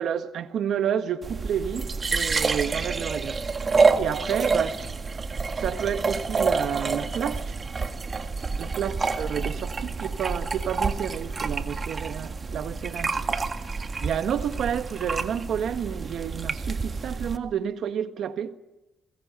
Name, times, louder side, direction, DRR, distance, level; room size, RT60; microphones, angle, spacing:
voice 1, 0.0-3.4 3.9-4.8 5.6-7.5 8.6-13.4 14.0-18.5, right 8 dB, 70° right, 1.5 m, -30 dB
sound 1, 1.2-17.4, right 4 dB, 35° right, 1.8 m, -28 dB
22.5 x 21.5 x 9.1 m
cardioid pair, 90°, 0 cm